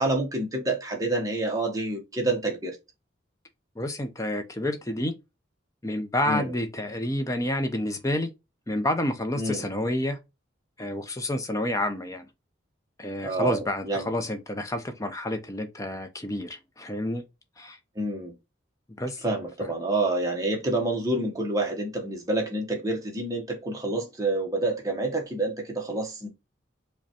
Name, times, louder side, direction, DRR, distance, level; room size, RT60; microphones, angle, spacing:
voice 1, 0.0-2.8 6.3-6.5 9.4-9.6 13.2-14.1 18.0-18.3 19.2-26.3, right 2 dB, 15° right, 0.8 m, -28 dB
voice 2, 3.8-5.1 5.8-8.3 8.7-10.2 10.8-12.3 13.0-17.2 17.6-17.8 19.0-19.2 19.6-19.7, left 1 dB, 15° left, 0.5 m, -29 dB
4.9 x 2.2 x 2.8 m
head